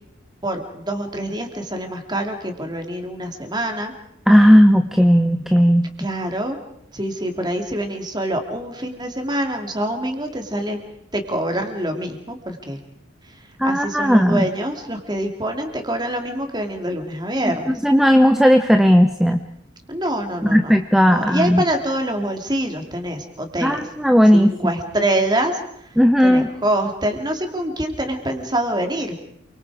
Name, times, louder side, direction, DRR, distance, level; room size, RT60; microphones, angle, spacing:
voice 1, 0.4-3.9 6.0-6.6 6.9-10.8 11.1-12.8 13.6-17.7 19.9-20.7 21.1-23.9 24.3-25.6 26.2-29.2, right 1 dB, 20° right, 5 dB, 2.7 m, -25 dB
voice 2, 4.3-5.9 13.6-14.5 17.8-19.4 20.5-21.6 23.6-24.5 26.0-26.5, equal, ahead, 7 dB, 0.7 m, -15 dB
28.0 x 24.0 x 4.9 m, 0.78 s
head